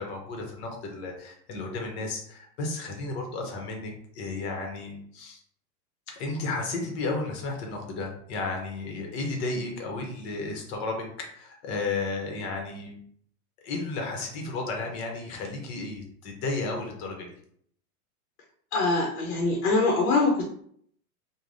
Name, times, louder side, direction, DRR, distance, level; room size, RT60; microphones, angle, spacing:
voice 1, 0.0-5.4 6.1-13.0 13.6-17.3, left 3 dB, 45° left, 2 dB, 0.8 m, -33 dB
voice 2, 18.7-20.4, left 3 dB, 80° left, -1 dB, 0.8 m, -23 dB
3.3 x 2.2 x 2.5 m, 0.64 s
supercardioid pair, 140°, 45 cm